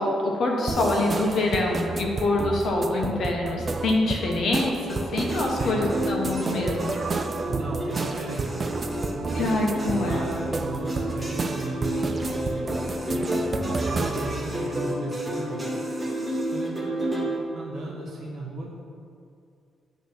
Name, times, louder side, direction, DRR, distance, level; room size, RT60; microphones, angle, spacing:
voice 1, 0.0-4.7 5.1-6.9 9.3-10.2, left 2 dB, 60° left, 0 dB, 1.2 m, -25 dB
sound 1, 0.7-14.4, right 3 dB, 30° right, 0.4 m, -31 dB
sound 2, 4.9-17.4, equal, 15° right, 1.1 m, -31 dB
voice 2, 5.6-5.9 7.4-8.7 9.1-9.6 9.9-12.8 13.8-15.6 16.5-18.7, right 2 dB, 60° right, -3 dB, 1.8 m, -36 dB
8.8 x 3.4 x 6.0 m, 2.5 s
cardioid pair, 120°, 0 cm